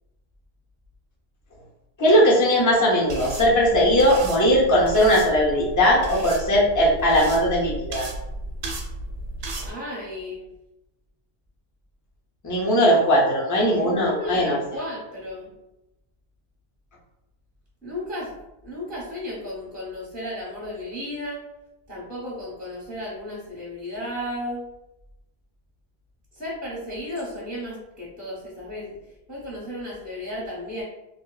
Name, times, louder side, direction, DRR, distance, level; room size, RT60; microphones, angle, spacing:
voice 1, 2.0-8.1 12.4-14.6, equal, 25° left, -4 dB, 0.5 m, -19 dB
sound 1, 3.1-9.7, right 1 dB, 75° right, 0.8 m, -34 dB
voice 2, 9.7-10.5 13.7-15.5 17.8-18.4 18.6-21.5 21.9-24.6 26.4-29.0 29.3-30.8, left 1 dB, 10° right, -6 dB, 0.7 m, -34 dB
2.7 x 2.1 x 2.3 m, 0.92 s
omnidirectional pair, 1.1 m